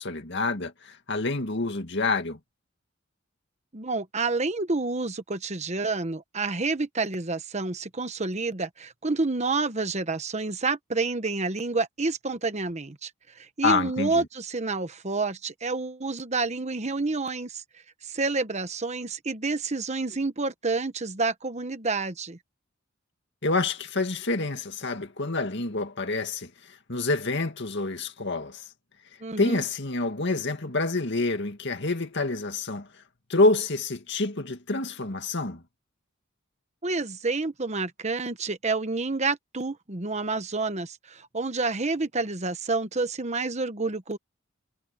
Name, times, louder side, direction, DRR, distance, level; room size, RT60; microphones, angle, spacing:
voice 1, 0.0-2.4 13.6-14.3 23.4-28.6 29.4-32.9 33.3-35.6, left 3 dB, 60° left, 2.2 m, -27 dB
voice 2, 3.7-13.1 13.4-17.6 18.0-22.4 29.2-29.6 36.8-44.2, right 3 dB, 35° right, 1.2 m, -29 dB
head